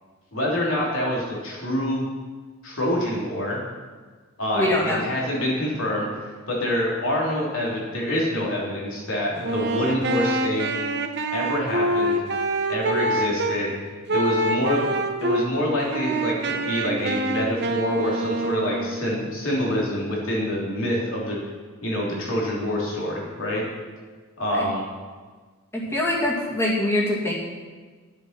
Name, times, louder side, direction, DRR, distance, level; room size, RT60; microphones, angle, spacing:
voice 1, 0.3-2.1 2.6-3.6 4.4-10.8 11.3-12.2 12.7-13.7 14.1-21.4 21.8-23.6 24.4-24.8, left 1 dB, 65° left, -4 dB, 3.4 m, -26 dB
voice 2, 4.5-5.1 24.5-24.7 25.7-27.3, left 1 dB, 10° left, -5 dB, 2.3 m, -23 dB
Wind instrument woodwind instrument, 9.4-13.6 14.1-15.5 15.9-19.1, right 2 dB, 50° right, 0.9 m, -26 dB
12.5 x 8.0 x 6.0 m, 1.4 s
head